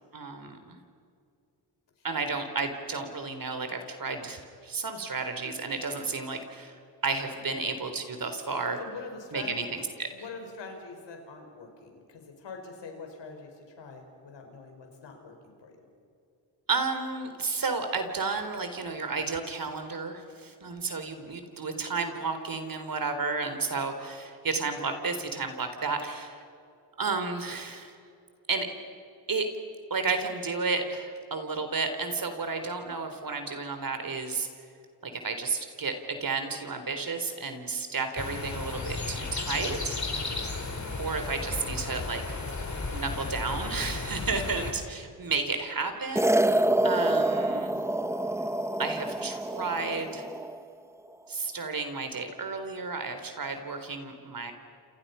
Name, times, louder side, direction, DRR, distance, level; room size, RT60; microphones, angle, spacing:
voice 1, 0.1-0.8 2.0-6.8 7.0-8.8 9.3-10.1 16.7-26.4 27.0-27.9 28.5-28.7 29.3-29.5 29.9-34.5 35.0-40.4 41.0-42.4 42.9-47.7 48.8-50.3 51.3-54.5, right 4 dB, 50° right, 7 dB, 3.8 m, -32 dB
voice 2, 8.8-9.7 10.1-15.7 40.0-40.4 46.4-46.8, left 4 dB, 75° left, 3 dB, 5.3 m, -44 dB
sound 1, 38.2-44.7, left 3 dB, 40° left, 4.1 m, -34 dB
sound 2, 46.2-50.6, right 1 dB, 5° right, 0.8 m, -27 dB
29.5 x 27.5 x 5.7 m, 2.4 s
cardioid pair, 65°, 43 cm